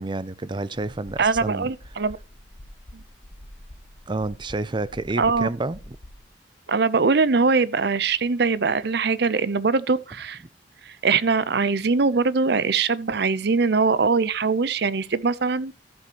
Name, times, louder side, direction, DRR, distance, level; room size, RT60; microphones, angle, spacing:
voice 1, 0.0-1.7 4.1-6.0, right 2 dB, 25° right, 0.6 m, -29 dB
sound 1, 0.9-6.3, left 1 dB, 40° left, 1.1 m, -46 dB
voice 2, 1.2-2.2 2.9-3.0 5.2-5.5 6.7-10.4 10.9-15.7, right 4 dB, 65° right, 0.7 m, -22 dB
14.0 x 7.6 x 3.0 m
head